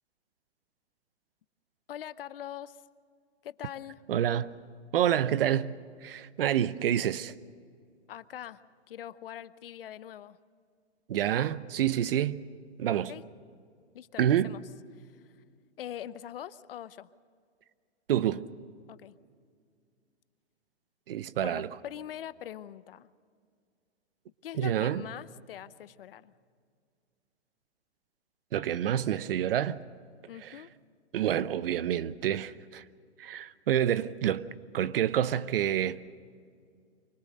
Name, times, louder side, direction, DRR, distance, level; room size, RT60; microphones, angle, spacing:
voice 1, 1.9-2.8 3.4-4.0 8.1-10.4 12.9-13.2 13.9-14.6 15.0-15.2 15.8-17.1 18.9-19.1 21.4-23.1 24.4-26.3 30.3-30.7, left 11 dB, 55° left, 0.7 m, -43 dB
voice 2, 4.1-4.5 4.9-5.7 6.0-7.3 11.1-12.4 12.8-13.1 14.2-14.5 18.1-18.5 21.1-21.7 24.6-25.0 28.5-29.8 30.4-30.5 31.1-32.8 33.2-34.5 34.7-36.0, right 10 dB, 55° right, 0.8 m, -28 dB
24.5 x 18.5 x 6.5 m
hypercardioid pair, 150°, 33 cm